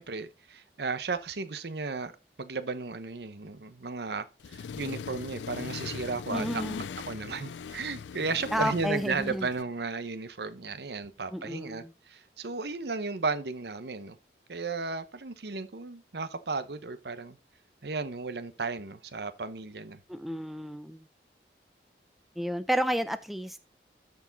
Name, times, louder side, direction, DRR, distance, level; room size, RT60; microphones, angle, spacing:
voice 1, 0.0-2.1 2.4-6.6 7.1-14.2 14.5-17.4 17.8-20.0, right 4 dB, 70° right, 0.8 m, -34 dB
Accelerating revving vroom, 4.4-9.6, left 6 dB, 90° left, 0.4 m, -40 dB
voice 2, 6.3-6.9 8.5-9.5 11.3-11.9 20.1-21.0 22.4-23.6, equal, ahead, 0.4 m, -31 dB
13.5 x 4.7 x 4.0 m
head